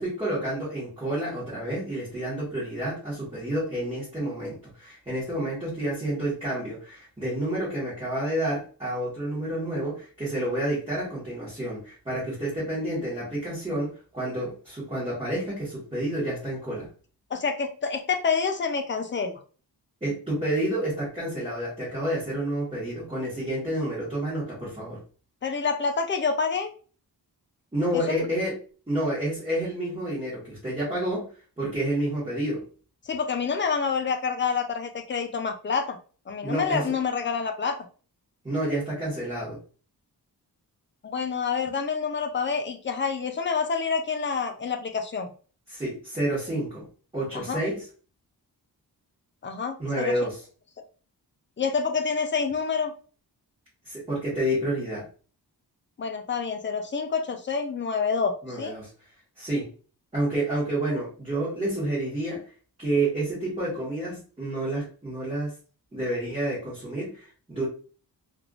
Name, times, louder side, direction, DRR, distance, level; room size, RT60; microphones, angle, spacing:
voice 1, 0.0-16.9 20.0-25.0 27.7-28.6 28.9-31.3 31.6-32.6 36.4-36.9 38.4-39.6 45.7-46.9 47.1-47.9 49.8-50.4 53.8-55.0 58.4-58.9 59.4-59.7 60.1-62.4 62.8-65.5 65.9-67.6, right 1 dB, 15° right, -9 dB, 1.3 m, -29 dB
voice 2, 17.3-19.4 25.4-26.7 27.9-28.3 33.1-36.0 36.3-37.8 41.0-45.3 47.3-47.6 49.4-50.1 51.6-52.9 56.0-58.7, left 5 dB, 30° left, 5 dB, 0.4 m, -27 dB
3.4 x 2.5 x 2.4 m, 0.39 s
wide cardioid pair, 160°, 39 cm